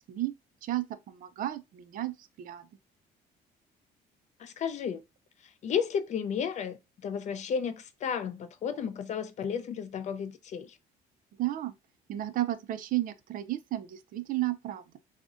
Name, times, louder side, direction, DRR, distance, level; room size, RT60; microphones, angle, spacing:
voice 1, 0.6-2.7 11.4-11.7 12.1-15.0, right 15 dB, 55° right, 0.4 m, -33 dB
voice 2, 4.4-5.0 5.4-10.8, left 7 dB, 45° left, 0.4 m, -33 dB
2.4 x 2.1 x 3.6 m
cardioid pair, 110°, 17 cm